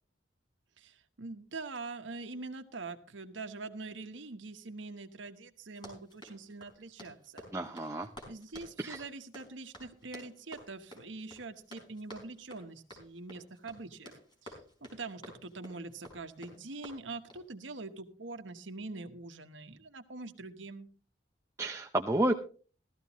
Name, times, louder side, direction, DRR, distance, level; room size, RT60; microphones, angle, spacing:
voice 1, 0.8-7.5 8.3-14.1 14.4-14.6 14.8-20.9, right 3 dB, 75° right, 8 dB, 1.1 m, -44 dB
Run, 5.7-17.5, left 1 dB, 25° left, 4.4 m, -52 dB
voice 2, 7.5-8.1 8.8-9.0 21.6-22.4, right 1 dB, 15° right, 4 dB, 0.6 m, -31 dB
15.0 x 13.5 x 3.1 m, 0.39 s
head